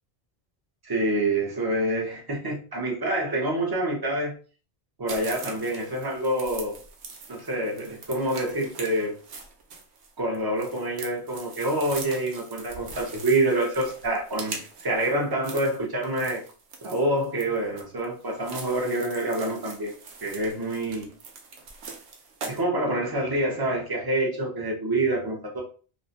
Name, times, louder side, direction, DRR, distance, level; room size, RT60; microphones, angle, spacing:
voice 1, 0.8-4.3 5.0-6.7 7.3-9.2 10.2-16.4 16.8-19.9 20.2-21.1 22.5-25.6, right 1 dB, 30° right, -1 dB, 0.5 m, -27 dB
sound 1, 5.1-22.6, right 4 dB, 90° right, 0.9 m, -42 dB
2.5 x 2.0 x 2.7 m, 0.38 s
omnidirectional pair, 1.1 m